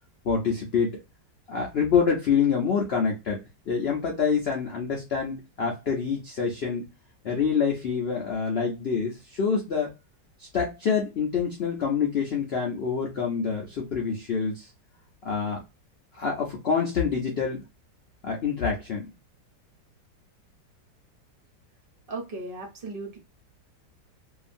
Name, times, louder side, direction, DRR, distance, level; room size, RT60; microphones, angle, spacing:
voice 1, 0.2-1.0 1.5-3.4 3.7-6.9 7.2-9.9 10.4-14.7 15.2-15.6 16.1-17.6 18.2-19.1, left 6 dB, 85° left, 0 dB, 0.5 m, -26 dB
voice 2, 22.1-23.2, right 2 dB, 45° right, 1 dB, 0.7 m, -36 dB
2.8 x 2.4 x 2.5 m, 0.25 s
omnidirectional pair, 1.9 m